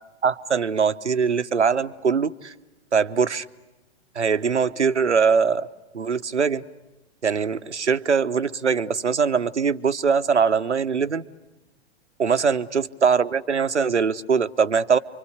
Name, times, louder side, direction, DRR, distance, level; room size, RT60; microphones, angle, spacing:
voice 1, 0.2-2.5 2.9-3.5 4.1-5.7 5.9-6.6 7.2-11.2 12.2-15.0, right 6 dB, 80° right, 14 dB, 0.9 m, -22 dB
30.0 x 25.0 x 8.0 m, 1.0 s
figure-of-eight pair, 105°, 34 cm